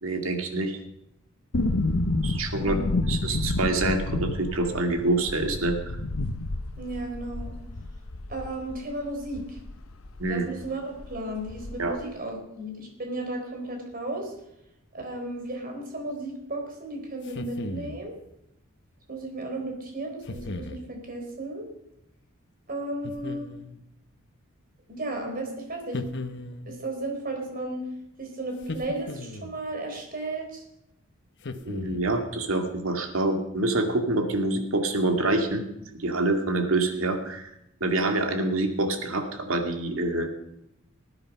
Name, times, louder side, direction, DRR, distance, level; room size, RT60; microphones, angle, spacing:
voice 1, 0.0-0.8 2.2-2.8 3.1-5.8 10.2-10.5 11.8-12.0 31.7-35.6 35.9-37.5 37.8-40.3, right 2 dB, 75° right, 5 dB, 2.2 m, -26 dB
sound 1, 1.5-10.4 10.6-10.7 11.0-12.0 12.3-12.4, left 2 dB, 90° left, 1.0 m, -30 dB
voice 2, 2.6-3.1 6.8-7.6 8.3-9.6 10.3-14.3 14.9-18.1 19.1-21.7 22.7-23.5 24.9-26.0 26.7-27.8 28.2-30.6, right 2 dB, 45° right, 2 dB, 4.2 m, -34 dB
sound 2, 17.2-18.1 20.3-20.9 23.0-23.8 25.9-26.8 28.6-29.6 31.4-32.2, left 2 dB, 60° left, 1.1 m, -37 dB
19.0 x 9.7 x 5.5 m, 0.82 s
head